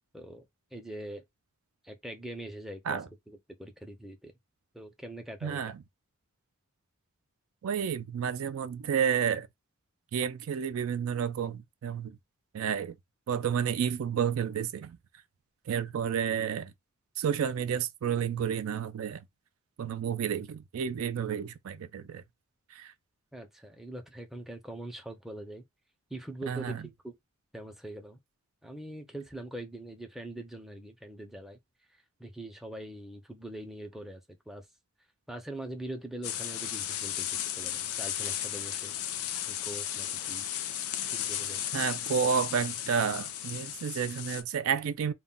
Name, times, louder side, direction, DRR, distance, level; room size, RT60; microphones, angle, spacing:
voice 1, 0.1-1.2 1.8-3.0 3.3-4.3 4.7-5.6 23.3-25.6 26.1-27.2 27.5-28.2 28.6-31.6 32.2-34.7 35.3-38.9 39.5-40.5 41.1-41.6, right 1 dB, ahead, 0.4 m, -43 dB
voice 2, 5.4-5.8 7.6-9.5 10.1-12.2 12.5-13.0 13.3-15.0 15.7-16.7 17.2-19.3 19.8-22.2 22.7-22.9 26.5-26.9 41.7-45.1, right 7 dB, 70° right, 0.3 m, -31 dB
sound 1, 36.2-44.4, left 11 dB, 85° left, 0.5 m, -35 dB
2.2 x 2.1 x 3.7 m
head